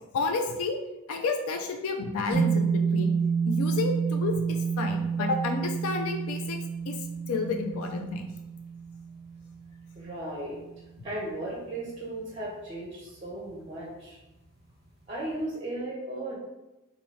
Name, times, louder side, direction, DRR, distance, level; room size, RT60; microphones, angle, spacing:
voice 1, 0.1-0.8 1.1-3.1 3.4-6.6 6.9-7.0 7.3-8.3, left 3 dB, 85° left, 3 dB, 0.4 m, -30 dB
sound 1, 2.3-10.8, right 6 dB, ahead, 0.8 m, -29 dB
voice 2, 10.0-10.6 11.0-14.2 15.1-16.4, right 1 dB, 25° right, -5 dB, 0.5 m, -36 dB
2.6 x 2.6 x 3.1 m, 0.99 s
head